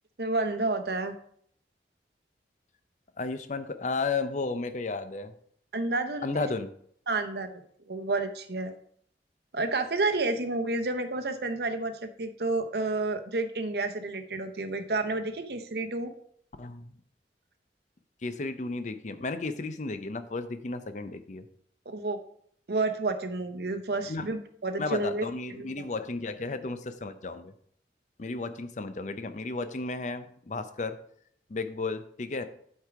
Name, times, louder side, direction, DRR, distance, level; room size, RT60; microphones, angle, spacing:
voice 1, 0.2-1.1 5.7-6.5 7.1-8.7 9.5-16.1 21.9-22.2 22.7-25.8, right 2 dB, 65° right, 7 dB, 0.8 m, -30 dB
voice 2, 3.2-5.3 6.2-6.7 16.6-17.0 18.2-21.5 24.1-24.3 24.8-27.5 28.2-31.0 31.5-32.5, left 3 dB, 45° left, 10 dB, 0.6 m, -33 dB
8.4 x 4.6 x 4.8 m, 0.64 s
head